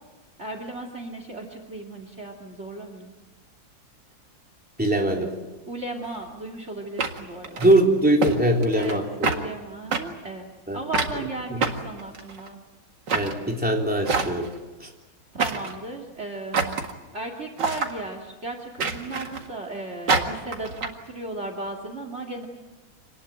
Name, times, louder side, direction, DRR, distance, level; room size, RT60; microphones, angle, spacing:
voice 1, 0.4-3.1 5.7-7.7 8.7-9.0 9.3-12.6 15.3-16.8 17.1-22.5, right 2 dB, 35° right, 5 dB, 2.8 m, -35 dB
voice 2, 4.8-5.3 7.6-9.3 10.7-10.8 13.1-14.5 14.8-14.9, right 1 dB, 5° right, 0 dB, 3.5 m, -21 dB
sound 1, 6.0-6.2 7.0-7.8 8.2-8.4 8.6-9.0 9.2-9.4 9.9-10.0 10.9-11.2 11.6-12.5 13.1-13.3 14.1-14.6 15.4-15.8 16.5-16.9 17.6-17.9 18.8-19.5 20.1-20.9, right 4 dB, 65° right, 2.6 m, -26 dB
27.0 x 19.5 x 9.0 m, 1.1 s
omnidirectional pair, 2.1 m